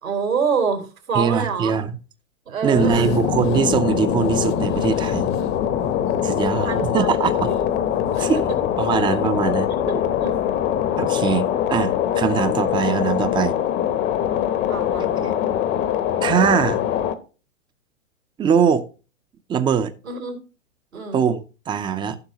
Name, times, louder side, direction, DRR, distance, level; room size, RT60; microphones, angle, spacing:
voice 1, 0.0-1.8 2.5-3.1 6.6-7.6 8.1-8.6 8.9-9.0 9.9-10.4 14.7-15.4 20.0-20.4 20.9-21.2, right 5 dB, 85° right, 3.8 m, -27 dB
voice 2, 1.1-2.0 2.6-5.3 6.2-7.5 8.2-8.4 8.8-9.7 11.0-13.6 16.2-16.8 18.4-18.9 19.5-19.9 21.1-22.2, right 7 dB, 10° right, 0.6 m, -21 dB
sound 1, 2.7-17.1, left 10 dB, 25° left, 0.8 m, -23 dB
14.5 x 6.1 x 2.9 m
hypercardioid pair, 115°, 39 cm